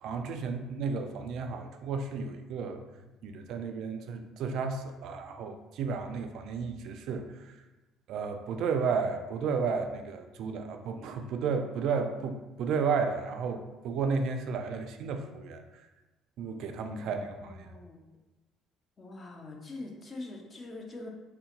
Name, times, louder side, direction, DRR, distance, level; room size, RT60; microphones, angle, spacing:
voice 1, 0.0-2.8 3.2-7.3 8.1-15.6 16.4-17.7, right 5 dB, 65° right, 6 dB, 0.3 m, -33 dB
voice 2, 17.0-18.0 19.0-21.1, left 2 dB, 30° left, 1 dB, 0.5 m, -44 dB
3.6 x 2.1 x 2.8 m, 1.1 s
cardioid pair, 140°, 0 cm